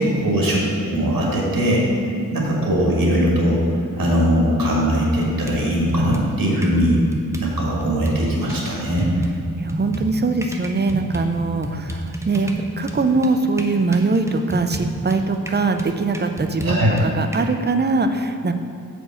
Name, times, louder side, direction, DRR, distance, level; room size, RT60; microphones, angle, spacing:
voice 1, 0.0-2.0 2.3-3.6 4.0-7.0 7.4-9.1 16.6-16.9, equal, 85° right, -3 dB, 1.7 m, -20 dB
sound 1, 5.2-6.8 7.1-8.6 9.0-17.4, right 1 dB, 10° right, 0.8 m, -30 dB
voice 2, 9.6-18.5, right 3 dB, 30° right, 7 dB, 0.5 m, -22 dB
7.7 x 5.2 x 4.9 m, 2.6 s
wide cardioid pair, 55°, 34 cm